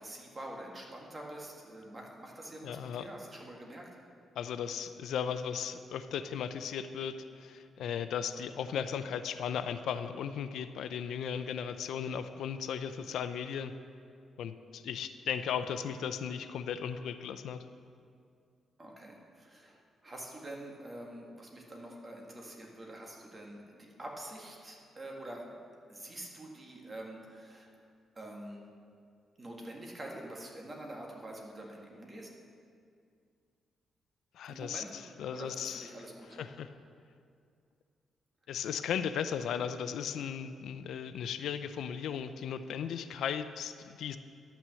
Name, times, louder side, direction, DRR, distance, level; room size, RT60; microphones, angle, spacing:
voice 1, 0.0-3.9 18.8-25.6 25.9-27.7 28.2-28.6 29.4-32.3 34.5-34.9 35.3-36.5, right 1 dB, 25° right, -1 dB, 1.8 m, -46 dB
voice 2, 2.6-3.1 4.4-13.7 14.4-17.6 34.3-35.9 36.4-36.7 38.5-44.2, left 8 dB, 80° left, 11 dB, 0.5 m, -36 dB
11.0 x 6.0 x 7.6 m, 2.3 s
cardioid pair, 125°, 0 cm